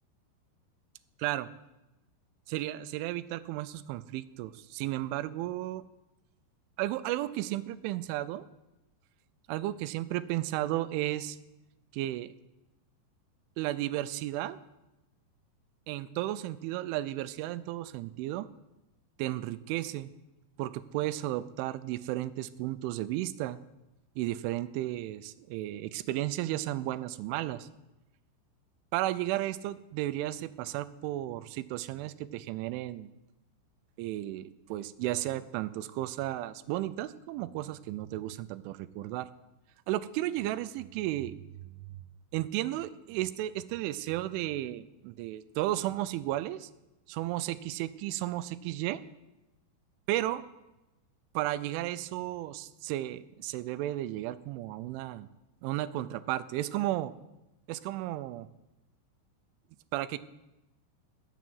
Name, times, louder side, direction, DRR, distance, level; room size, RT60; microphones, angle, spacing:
voice 1, 2.5-5.8 6.8-8.5 9.5-11.4 11.9-12.3 13.6-14.6 15.9-18.5 19.2-20.1 20.6-23.6 24.2-27.7 28.9-33.1 34.0-39.3 39.9-41.4 42.3-46.7 47.1-49.0 50.1-50.4 51.3-55.3 55.6-57.1 57.7-58.5 59.9-60.2, right 15 dB, 85° right, 14 dB, 3.1 m, -33 dB
14.0 x 8.3 x 9.3 m, 0.97 s
omnidirectional pair, 5.5 m